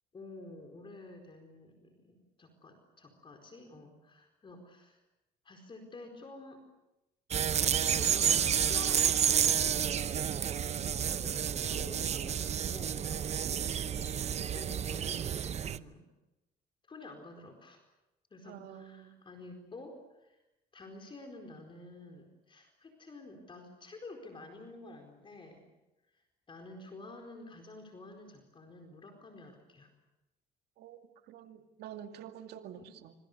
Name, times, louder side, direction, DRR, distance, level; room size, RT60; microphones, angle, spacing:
voice 1, 0.1-5.0 5.4-6.6 7.7-10.2 10.8-13.6 14.2-15.3 15.6-16.0 16.9-17.8 18.3-20.4 20.7-25.6 26.1-26.2 26.5-29.9 32.8-32.9, left 2 dB, 30° left, 3 dB, 4.5 m, -50 dB
sound 1, 7.3-15.8, right 8 dB, 40° right, 0.8 m, -30 dB
voice 2, 10.6-11.4 18.4-19.3 30.8-33.2, right 9 dB, 75° right, 6 dB, 2.4 m, -49 dB
26.0 x 26.0 x 6.7 m, 0.98 s
cardioid pair, 110°, 17 cm